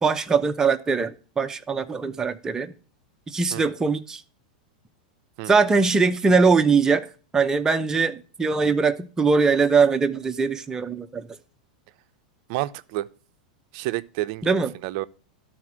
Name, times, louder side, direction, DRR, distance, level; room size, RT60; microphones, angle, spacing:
voice 1, 0.0-2.7 3.3-4.2 5.5-7.1 7.3-11.3 14.4-14.7, right 4 dB, 15° right, 0.8 m, -21 dB
voice 2, 12.5-13.1 13.7-14.5 14.8-15.1, right 17 dB, 50° right, 0.6 m, -29 dB
12.5 x 4.3 x 6.1 m
supercardioid pair, 130°, 4 cm